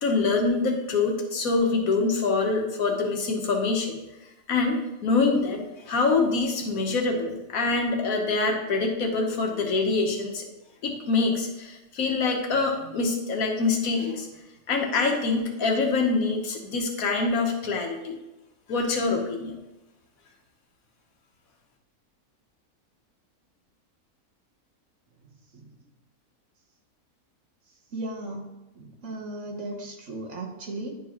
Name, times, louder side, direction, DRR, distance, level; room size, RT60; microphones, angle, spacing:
voice 1, 0.0-3.9 4.5-10.4 10.8-14.3 14.7-18.2 18.7-19.6, left 3 dB, 75° left, 3 dB, 1.4 m, -25 dB
voice 2, 25.5-25.8 27.9-30.9, right 2 dB, 60° right, 1 dB, 1.3 m, -37 dB
10.0 x 4.5 x 2.9 m, 1.0 s
omnidirectional pair, 1.5 m